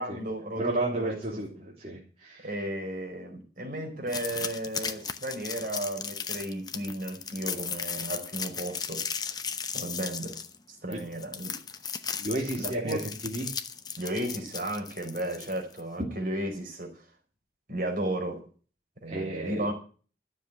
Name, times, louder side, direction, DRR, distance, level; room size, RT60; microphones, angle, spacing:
voice 1, 0.0-1.2 2.4-9.1 9.7-10.4 10.8-11.5 12.5-13.0 14.0-17.0 17.7-18.5 19.0-19.7, right 1 dB, 50° right, 4.6 m, -34 dB
voice 2, 0.5-2.5 10.9-11.0 12.2-13.0 13.2-13.5 19.1-19.7, right 1 dB, 35° right, 3.4 m, -32 dB
sound 1, 4.1-15.8, left 6 dB, 25° left, 0.9 m, -36 dB
13.0 x 7.4 x 9.3 m
head